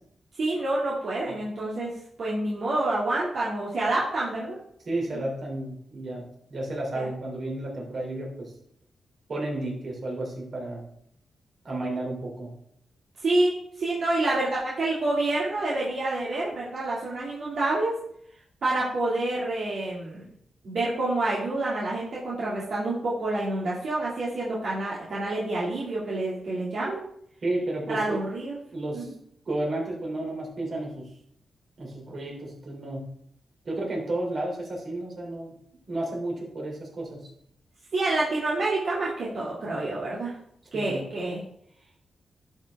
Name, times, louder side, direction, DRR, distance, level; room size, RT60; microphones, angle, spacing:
voice 1, 0.3-1.9 2.2-4.6 5.1-5.2 6.9-7.1 13.2-17.9 18.6-20.3 20.6-27.1 27.9-28.6 28.9-29.1 37.9-40.3 40.7-41.4, right 2 dB, 65° right, -7 dB, 2.4 m, -28 dB
voice 2, 4.9-6.2 6.5-8.5 9.3-10.8 11.6-12.5 27.4-28.2 28.7-29.1 29.5-31.1 31.8-33.1 33.6-35.5 35.9-37.3 40.7-41.0, right 2 dB, 50° right, -2 dB, 3.2 m, -32 dB
11.5 x 5.4 x 3.6 m, 0.70 s
cardioid pair, 100°, 0 cm